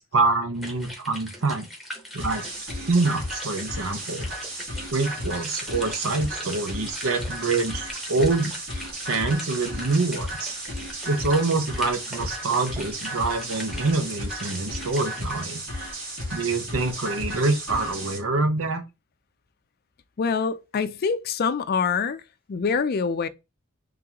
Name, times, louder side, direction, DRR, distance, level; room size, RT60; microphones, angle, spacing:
voice 1, 0.0-1.7 2.1-2.5 2.9-4.3 4.9-7.8 8.1-8.5 9.1-10.5 11.1-15.6 16.3-18.8, right 3 dB, 85° right, 0.9 m, -25 dB
sound 1, 0.6-15.4, equal, ahead, 1.1 m, -41 dB
sound 2, 2.2-18.2, equal, 70° right, 2.4 m, -34 dB
voice 2, 20.2-22.2 22.5-23.3, left 5 dB, 50° left, 0.4 m, -25 dB
3.8 x 3.3 x 2.9 m
head